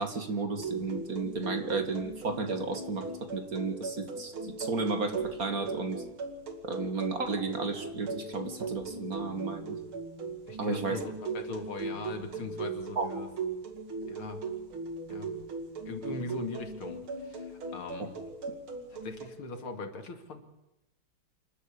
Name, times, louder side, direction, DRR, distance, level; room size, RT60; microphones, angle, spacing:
voice 1, 0.0-6.0 6.6-9.8 10.6-11.0 13.0-13.1 18.0-18.1, right 3 dB, 45° right, 7 dB, 2.5 m, -33 dB
sound 1, 0.6-19.3, right 3 dB, 75° right, 3.1 m, -39 dB
voice 2, 10.5-13.3 14.1-14.4 15.1-15.4 15.8-18.2 18.9-20.4, left 3 dB, 80° left, 7 dB, 3.2 m, -40 dB
27.5 x 12.0 x 8.7 m, 0.94 s
omnidirectional pair, 2.3 m